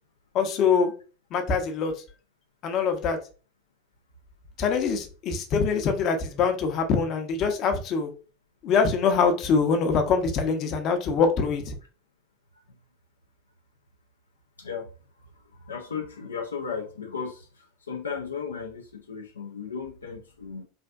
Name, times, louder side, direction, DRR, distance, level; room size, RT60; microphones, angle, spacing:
voice 1, 0.3-0.9 1.3-1.9 2.6-3.2 4.6-8.1 8.6-11.7, left 5 dB, 45° left, 0.6 m, -24 dB
voice 2, 14.6-14.9 15.5-20.6, left 6 dB, 90° left, 0.4 m, -35 dB
3.3 x 2.5 x 2.3 m
hypercardioid pair, 85°, 0 cm